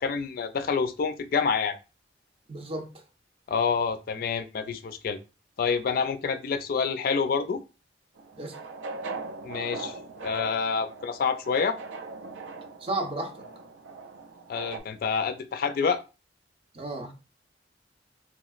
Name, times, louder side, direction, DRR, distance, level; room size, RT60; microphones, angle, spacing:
voice 1, 0.0-1.7 3.5-5.2 5.6-7.6 9.4-9.9 10.2-11.8 14.5-16.0, left 5 dB, 50° left, 0.3 m, -27 dB
voice 2, 2.5-2.9 8.4-8.6 12.8-13.5 16.7-17.1, right 2 dB, 30° right, 0.5 m, -33 dB
sound 1, 8.2-14.8, right 3 dB, 90° right, 0.4 m, -40 dB
3.4 x 2.9 x 2.3 m
head